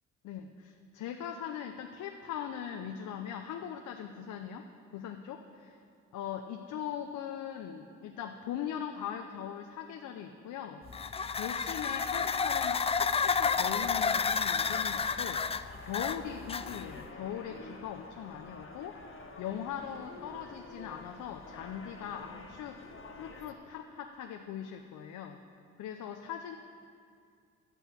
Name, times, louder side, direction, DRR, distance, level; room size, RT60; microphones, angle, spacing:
voice 1, 0.2-4.7 4.9-5.8 6.1-10.8 11.3-15.4 15.8-19.0 19.4-25.4 25.8-26.6, left 9 dB, 80° left, 5 dB, 0.7 m, -40 dB
sound 1, 10.9-17.1, left 5 dB, 20° left, 0.3 m, -31 dB
sound 2, 13.5-23.5, left 3 dB, 40° left, 1.7 m, -49 dB
11.0 x 8.2 x 8.3 m, 2.4 s
cardioid pair, 90°, 30 cm